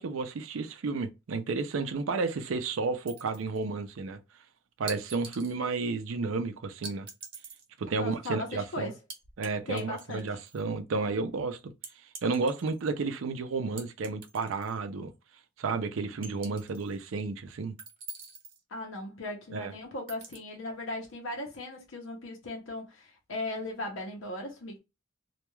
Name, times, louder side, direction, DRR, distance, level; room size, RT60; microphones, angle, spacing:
voice 1, 0.0-4.2 4.8-7.1 7.8-8.9 9.4-11.6 12.2-15.1 15.6-17.7 19.5-19.7, right 4 dB, 90° right, 0.5 m, -32 dB
sound 1, 3.1-3.6 4.9-5.6 6.8-7.7 9.1-9.5 9.8-10.6 11.8-12.9 13.8-14.8 15.1-15.2 16.2-17.0 17.8-18.6 20.1-20.4, right 5 dB, 45° right, 0.9 m, -44 dB
voice 2, 8.0-8.9 9.7-10.4 18.7-24.8, left 2 dB, 75° left, 0.7 m, -38 dB
2.3 x 2.2 x 3.0 m
head